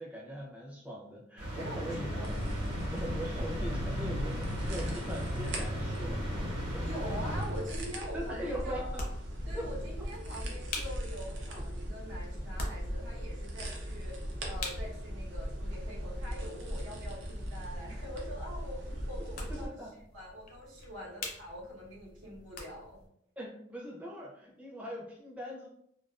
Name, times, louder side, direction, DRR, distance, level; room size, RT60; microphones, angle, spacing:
voice 1, 0.0-2.2 2.9-6.9 7.1-7.2 8.1-9.1 9.5-9.7 18.9-19.0 19.5-19.9 21.2-21.3 23.4-25.7, equal, 5° right, -4 dB, 0.5 m, -41 dB
sound 1, 1.4-8.1, equal, 50° right, 1.0 m, -36 dB
voice 2, 1.6-2.3 6.8-8.8 9.5-19.7 20.1-23.1, equal, 80° right, -4 dB, 1.0 m, -44 dB
sound 2, 2.2-19.7, equal, 65° right, 0.5 m, -39 dB
sound 3, 6.7-23.1, left 2 dB, 45° left, 0.5 m, -47 dB
2.4 x 2.3 x 2.3 m, 0.73 s
head